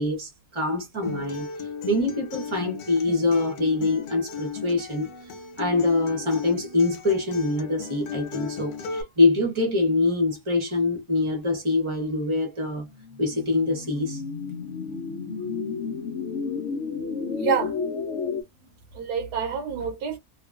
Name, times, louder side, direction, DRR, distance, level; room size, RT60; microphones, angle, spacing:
voice 1, 0.0-1.5 1.9-5.1 5.6-12.9 13.2-14.2, left 3 dB, 25° right, 0.8 m, -24 dB
Acoustic guitar, 1.0-9.0, left 5 dB, 90° left, 1.2 m, -36 dB
sound 1, 12.9-18.4, left 5 dB, 60° left, 0.8 m, -31 dB
voice 2, 17.4-17.8 18.9-20.2, right 7 dB, 85° right, 1.2 m, -27 dB
3.0 x 2.3 x 2.4 m
omnidirectional pair, 1.6 m